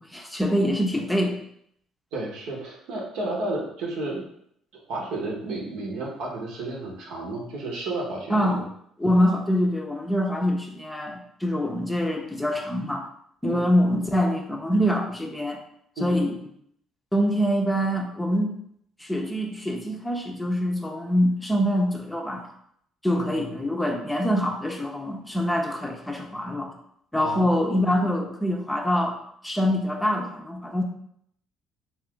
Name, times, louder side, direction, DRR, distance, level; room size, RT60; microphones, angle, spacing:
voice 1, 0.1-1.4 8.3-8.6 9.0-13.1 13.4-15.6 16.0-16.4 17.1-18.5 19.0-22.5 23.0-26.7 27.1-29.2 29.4-30.8, equal, 10° left, 2 dB, 0.6 m, -24 dB
voice 2, 2.1-4.2 4.7-8.6 13.5-13.6 16.0-16.1 23.1-23.6 27.2-27.6, right 2 dB, 75° right, -1 dB, 0.8 m, -32 dB
2.4 x 2.4 x 3.6 m, 0.69 s
supercardioid pair, 65°, 0 cm